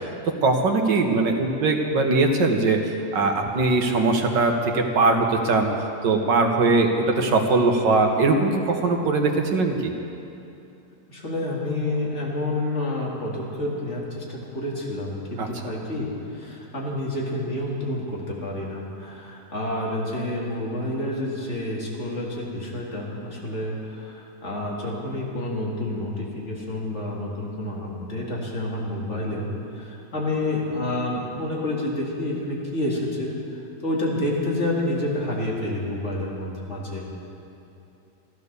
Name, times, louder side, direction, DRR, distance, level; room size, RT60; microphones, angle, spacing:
voice 1, 0.3-5.7 6.0-9.9 15.4-15.5, right 3 dB, 80° right, 3 dB, 1.9 m, -21 dB
voice 2, 11.1-33.3 33.8-37.3, left 1 dB, 40° left, -3 dB, 2.6 m, -29 dB
13.0 x 13.0 x 6.8 m, 2.8 s
omnidirectional pair, 1.9 m